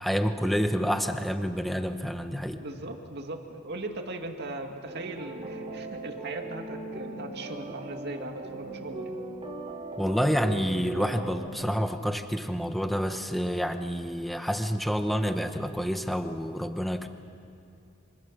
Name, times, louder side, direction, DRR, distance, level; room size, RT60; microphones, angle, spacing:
voice 1, 0.0-2.6 10.0-17.1, equal, ahead, 7 dB, 1.1 m, -28 dB
voice 2, 2.5-9.2, right 2 dB, 55° right, 4 dB, 2.1 m, -39 dB
sound 1, 4.9-11.5, right 2 dB, 30° right, 3.1 m, -39 dB
25.5 x 25.0 x 6.6 m, 2.6 s
head